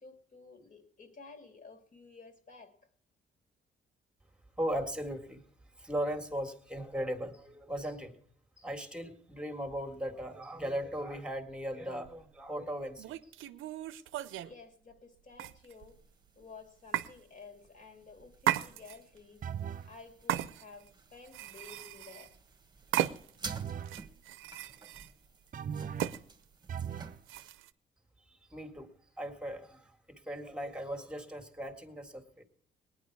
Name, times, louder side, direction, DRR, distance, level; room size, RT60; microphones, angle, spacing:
voice 1, 0.0-2.7 14.4-16.0 16.4-19.4 19.8-22.3, left 4 dB, 40° left, 5 dB, 2.5 m, -53 dB
voice 2, 4.6-5.4 5.8-8.2 8.6-13.1 28.3-28.9 29.2-32.4, equal, 5° right, 6 dB, 1.9 m, -38 dB
sound 1, 12.0-12.2 13.0-14.5 15.4-16.0 16.9-17.1 18.4-19.2 20.3-20.9 21.3-22.4 22.9-23.5 23.8-25.1 26.0-26.2 27.3-27.7, right 13 dB, 85° right, 0.6 m, -35 dB
sound 2, 15.8-27.5, right 4 dB, 20° right, 1.3 m, -52 dB
sound 3, 19.4-19.9 23.5-24.0 25.5-26.2 26.7-27.2, right 8 dB, 45° right, 0.6 m, -38 dB
19.0 x 10.0 x 4.7 m, 0.67 s
cardioid pair, 90°, 20 cm